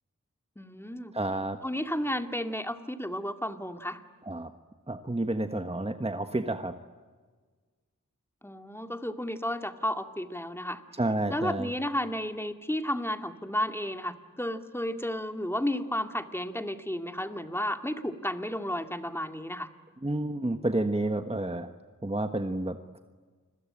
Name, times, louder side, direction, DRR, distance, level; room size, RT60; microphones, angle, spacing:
voice 1, 0.6-1.1 1.6-4.0 8.4-10.8 11.3-19.7, left 1 dB, 5° left, 6 dB, 2.2 m, -32 dB
voice 2, 1.1-1.6 4.3-4.5 4.9-6.7 11.0-11.7 20.0-21.7 22.0-22.8, right 2 dB, 20° right, 7 dB, 1.4 m, -30 dB
29.5 x 22.0 x 8.8 m, 1.4 s
cardioid pair, 45°, 32 cm